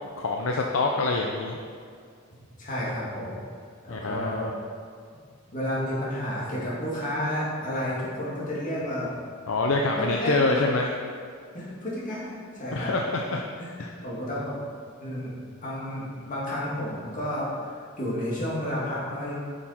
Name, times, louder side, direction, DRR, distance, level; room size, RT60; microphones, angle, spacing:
voice 1, 0.2-1.6 3.9-4.5 9.5-11.0 12.7-13.4 13.8-13.9, left 3 dB, 70° left, 1 dB, 0.6 m, -26 dB
voice 2, 2.6-3.4 3.8-4.5 5.5-9.1 9.9-10.6 11.5-12.9 13.6-13.8 14.0-14.6 15.0-15.4 15.6-19.3, equal, 40° left, -7 dB, 2.2 m, -31 dB
7.4 x 6.6 x 4.4 m, 2.2 s
head